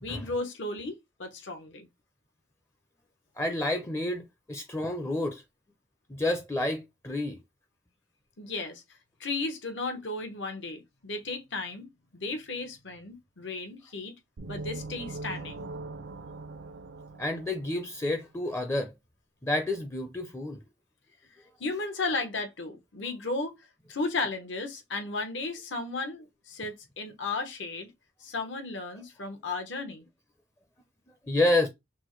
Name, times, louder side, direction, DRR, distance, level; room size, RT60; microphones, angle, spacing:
voice 1, 0.0-1.9 8.4-8.8 9.2-14.2 14.4-15.7 21.6-27.9 28.2-30.1, left 3 dB, 70° left, 1.0 m, -35 dB
voice 2, 3.4-5.4 6.1-7.4 17.2-18.9 19.4-20.6 31.3-31.7, left 1 dB, 15° left, 0.5 m, -29 dB
sound 1, 14.4-18.1, right 3 dB, 70° right, 0.5 m, -41 dB
6.0 x 2.1 x 3.1 m
head